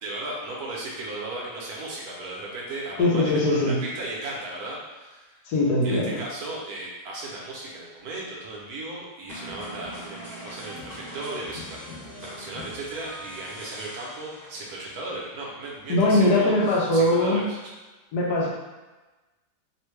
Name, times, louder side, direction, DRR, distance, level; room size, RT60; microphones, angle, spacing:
voice 1, 0.0-5.4 5.8-11.8 12.2-17.6, right 2 dB, 70° right, -4 dB, 1.2 m, -36 dB
voice 2, 3.0-3.8 5.5-6.2 15.9-17.4 18.1-18.5, left 1 dB, 75° left, -4 dB, 1.3 m, -21 dB
sound 1, 9.3-15.0, equal, 45° left, 0.8 m, -41 dB
3.3 x 2.2 x 3.1 m, 1.2 s
omnidirectional pair, 1.8 m